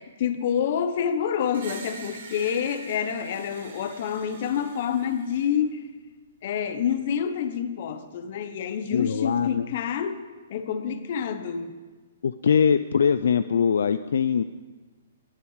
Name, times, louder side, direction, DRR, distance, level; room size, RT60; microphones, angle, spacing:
voice 1, 0.0-5.9 6.4-10.2 10.5-11.8, left 8 dB, 50° left, 10 dB, 1.0 m, -28 dB
Screech, 1.5-5.5, right 5 dB, 65° right, 2.2 m, -45 dB
voice 2, 8.9-9.7 12.2-14.4, left 7 dB, 75° left, 13 dB, 0.4 m, -22 dB
18.0 x 8.5 x 5.0 m, 1.4 s
hypercardioid pair, 155°, 0 cm